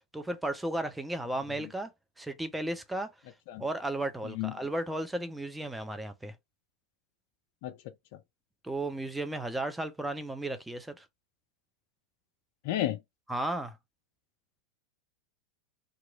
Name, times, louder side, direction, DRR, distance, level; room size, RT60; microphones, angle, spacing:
voice 1, 0.1-1.9 2.2-3.1 3.6-6.3 8.6-11.1 13.3-13.8, right 1 dB, 5° right, 0.5 m, -34 dB
voice 2, 4.2-4.6 7.6-7.8 8.1-8.2 12.6-13.0, left 13 dB, 50° left, 0.6 m, -32 dB
2.9 x 2.4 x 3.6 m
figure-of-eight pair, 90°, 0 cm